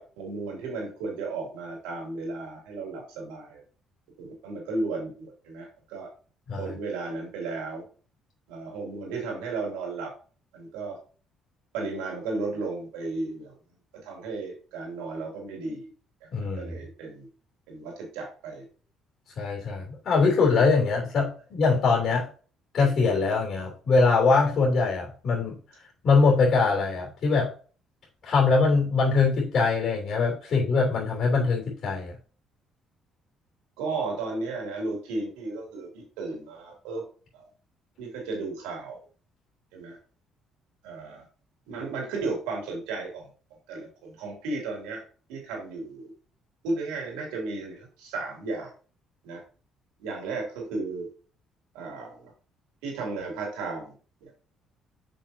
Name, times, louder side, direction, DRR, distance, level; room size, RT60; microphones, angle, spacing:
voice 1, 0.0-3.6 4.2-6.1 6.5-7.8 8.5-10.1 10.5-11.0 11.7-13.6 13.9-15.9 16.2-17.3 17.7-18.6 33.8-37.0 37.3-37.5 38.0-39.0 39.7-40.0 40.8-41.2 41.7-43.3 43.7-45.0 45.3-46.1 46.6-48.7 49.2-49.4 50.0-51.1 51.7-52.3 52.8-53.9 54.2-54.3, right 3 dB, 85° right, 0 dB, 2.8 m, -34 dB
voice 2, 16.3-16.8 19.4-22.3 22.7-25.6 26.0-27.5 28.2-32.1, left 4 dB, 60° left, -2 dB, 3.1 m, -23 dB
7.1 x 5.7 x 2.8 m, 0.38 s
supercardioid pair, 65°, 0 cm